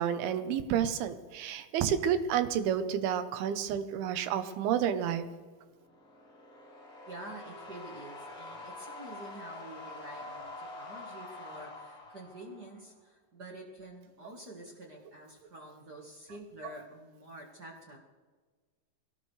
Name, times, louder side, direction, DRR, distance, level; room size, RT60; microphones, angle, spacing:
voice 1, 0.0-5.3, right 9 dB, 85° right, 11 dB, 2.8 m, -30 dB
sound 1, 5.8-12.9, left 2 dB, 20° left, 2.6 m, -46 dB
voice 2, 7.0-18.0, right 1 dB, 55° right, -1 dB, 1.1 m, -48 dB
23.0 x 17.5 x 3.3 m, 1.4 s
omnidirectional pair, 4.4 m